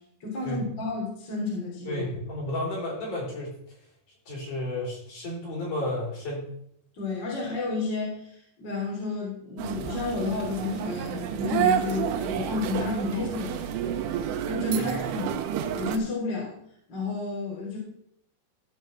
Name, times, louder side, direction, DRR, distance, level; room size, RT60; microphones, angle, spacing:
voice 1, 0.2-2.0 6.9-13.8 14.4-15.4 15.8-16.6 16.9-17.8, left 4 dB, 30° left, -4 dB, 3.4 m, -31 dB
voice 2, 1.9-3.5 4.3-6.5 14.8-15.0, left 1 dB, 50° left, -4 dB, 5.6 m, -32 dB
sound 1, 9.6-16.0, right 10 dB, 80° right, 2.9 m, -29 dB
14.5 x 5.2 x 6.0 m, 0.69 s
omnidirectional pair, 4.9 m